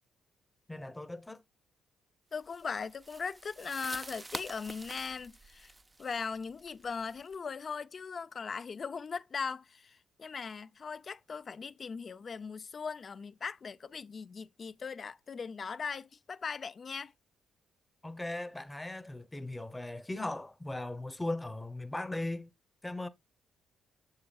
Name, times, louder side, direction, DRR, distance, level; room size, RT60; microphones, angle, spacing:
voice 1, 0.7-1.4 18.0-22.5 22.8-23.1, left 2 dB, 10° left, 0.9 m, -38 dB
voice 2, 2.3-5.7 6.0-17.1, left 5 dB, 40° left, 0.5 m, -39 dB
sound 1, 2.5-7.4, right 2 dB, 20° right, 0.6 m, -47 dB
8.7 x 6.9 x 2.4 m
cardioid pair, 90°, 0 cm